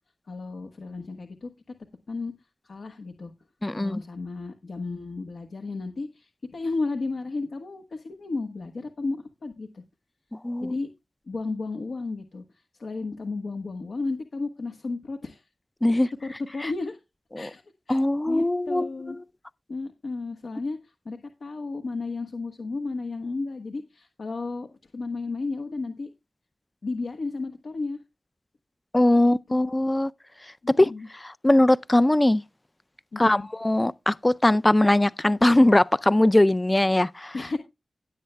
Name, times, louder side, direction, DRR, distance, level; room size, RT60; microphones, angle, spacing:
voice 1, 0.3-1.7 2.1-2.3 2.6-3.3 3.7-9.8 10.6-10.9 11.3-15.5 15.9-17.0 17.3-17.6 17.9-19.2 19.7-26.1 26.8-28.0 29.2-29.6 30.6-31.1 33.1-33.5 37.3-37.6, left 3 dB, 80° left, 1.2 m, -33 dB
voice 2, 3.6-4.0 10.4-10.8 15.8-16.1 16.6-16.7 17.4-17.5 17.9-18.9 28.9-30.1 30.8-32.4 33.2-37.3, left 1 dB, 25° left, 0.4 m, -21 dB
16.5 x 8.3 x 2.2 m
cardioid pair, 45°, 0 cm